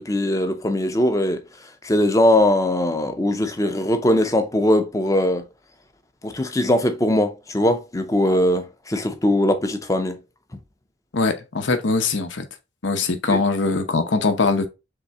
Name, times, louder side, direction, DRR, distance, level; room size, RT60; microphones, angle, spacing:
voice 1, 0.0-1.4 1.8-5.5 6.2-10.2 13.3-13.4, left 1 dB, 15° left, 0.5 m, -20 dB
voice 2, 11.1-12.4 12.8-14.7, left 3 dB, 80° left, 0.8 m, -21 dB
3.7 x 3.4 x 4.0 m
head